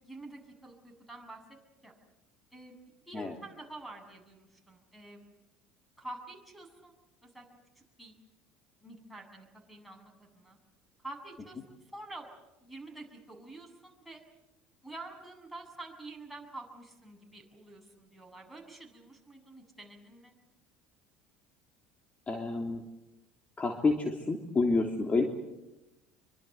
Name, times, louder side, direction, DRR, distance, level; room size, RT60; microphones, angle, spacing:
voice 1, 0.0-1.4 1.8-2.0 2.5-2.8 3.1-5.2 6.0-6.9 7.2-7.5 7.8-8.1 8.8-10.6 11.0-12.3 12.6-14.2 14.8-20.3, right 2 dB, ahead, 1 dB, 7.3 m, -48 dB
voice 2, 22.3-22.8 23.6-25.2, left 3 dB, 25° left, 3 dB, 3.2 m, -29 dB
26.0 x 24.5 x 8.1 m, 0.98 s
hypercardioid pair, 70°, 5 cm